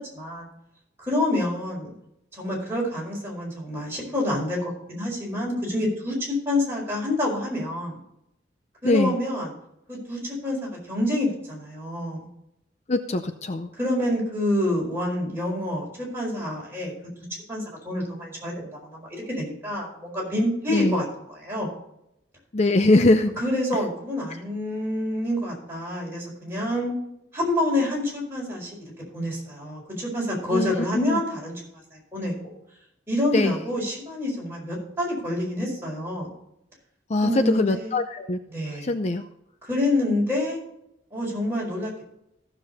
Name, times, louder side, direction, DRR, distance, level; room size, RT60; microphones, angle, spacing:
voice 1, 0.1-0.5 1.0-1.9 2.4-8.0 8.8-9.5 9.9-12.3 13.8-16.9 17.5-21.7 23.4-26.9 27.3-28.8 29.1-31.5 31.9-32.3 33.1-36.3 37.2-38.0 38.5-38.9 39.6-40.6 41.1-42.0, left 1 dB, 15° right, -4 dB, 4.9 m, -27 dB
voice 2, 8.8-9.2 12.9-13.7 20.7-21.0 22.5-23.3 30.5-31.2 33.3-33.6 37.1-38.4 38.8-39.2, left 2 dB, 40° left, 9 dB, 0.6 m, -22 dB
14.5 x 7.0 x 4.1 m, 0.80 s
head